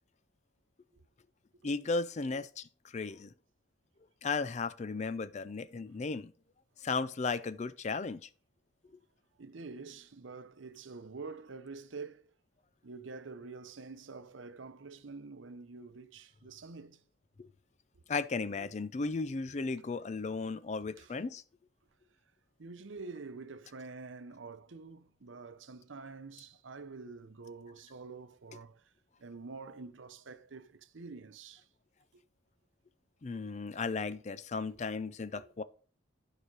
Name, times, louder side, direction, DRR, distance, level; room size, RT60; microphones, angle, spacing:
voice 1, 1.6-3.3 4.2-6.3 6.8-8.3 17.4-17.5 18.1-21.4 33.2-35.6, left 4 dB, 35° left, 0.4 m, -35 dB
voice 2, 9.4-12.3 12.8-17.0 17.9-18.0 18.6-18.7 19.5-19.6 21.0-21.1 22.6-28.9 29.2-31.7 35.4-35.5, right 4 dB, 85° right, 0.7 m, -47 dB
11.5 x 4.9 x 4.7 m
head